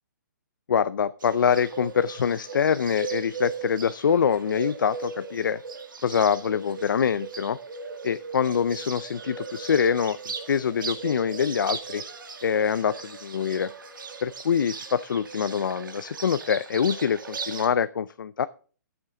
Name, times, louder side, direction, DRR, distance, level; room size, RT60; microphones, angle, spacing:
voice 1, 0.7-5.6 6.0-7.6 8.0-10.2 10.5-12.0 12.4-13.7 14.2-18.5, left 7 dB, 85° left, 15 dB, 0.4 m, -25 dB
Bird, 1.2-17.7, right 5 dB, 85° right, 1.8 m, -38 dB
13.0 x 7.1 x 3.8 m, 0.41 s
hypercardioid pair, 170°, 10 cm